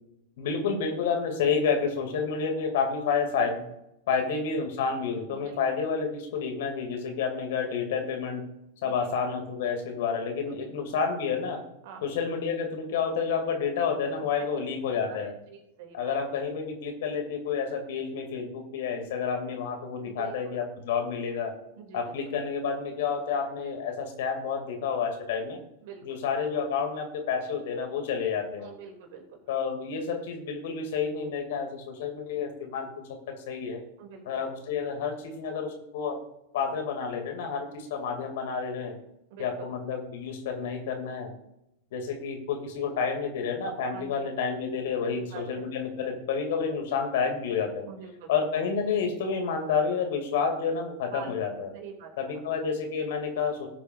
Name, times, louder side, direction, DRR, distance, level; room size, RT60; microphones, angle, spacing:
voice 1, 0.4-3.7 4.1-8.4 8.8-11.6 12.0-15.3 15.9-21.5 21.9-25.6 26.0-28.7 29.5-33.8 34.3-36.2 36.5-38.9 39.4-41.3 41.9-47.9 48.3-51.7 52.2-53.7, left 6 dB, 55° left, 4 dB, 2.3 m, -30 dB
voice 2, 10.5-10.9 11.8-12.0 14.4-14.5 15.1-16.1 20.0-20.6 21.8-22.0 25.8-26.0 28.6-29.4 34.0-34.4 39.3-39.7 43.9-44.1 45.0-45.7 47.9-48.3 51.1-51.3 51.7-52.1, right 7 dB, 50° right, 4 dB, 2.4 m, -45 dB
18.5 x 8.1 x 2.5 m, 0.83 s
figure-of-eight pair, 90°, 0 cm